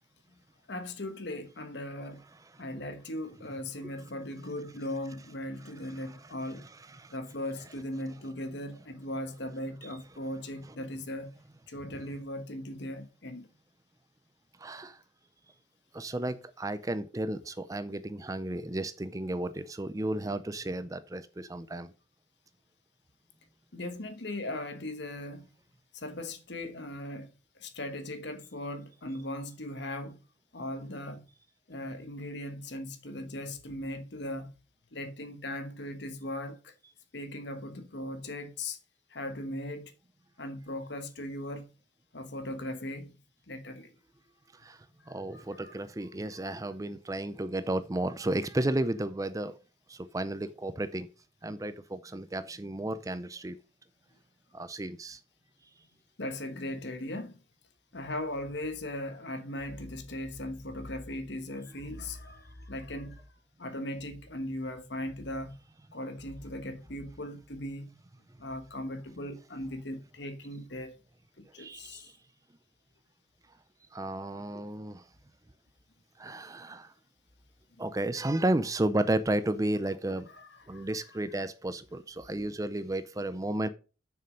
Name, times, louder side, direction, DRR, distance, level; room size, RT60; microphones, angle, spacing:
voice 1, 0.7-2.2 2.6-6.7 7.1-11.3 11.7-13.5 23.7-25.5 25.9-30.2 30.5-31.2 31.7-34.6 34.9-36.7 37.1-38.8 39.1-39.9 40.4-41.7 42.1-43.1 43.5-43.9 45.0-45.8 56.2-57.4 57.9-63.2 63.6-65.5 65.9-67.9 68.4-71.0 71.4-72.1 76.2-76.4 80.3-81.2, left 1 dB, 60° left, 1.3 m, -38 dB
voice 2, 14.6-15.0 15.9-21.9 44.5-49.5 49.9-51.1 51.4-53.6 54.5-55.2 71.6-72.1 73.9-75.1 76.2-76.9 77.8-80.3 80.7-83.7, right 1 dB, 15° right, 0.5 m, -33 dB
6.9 x 6.4 x 5.2 m
head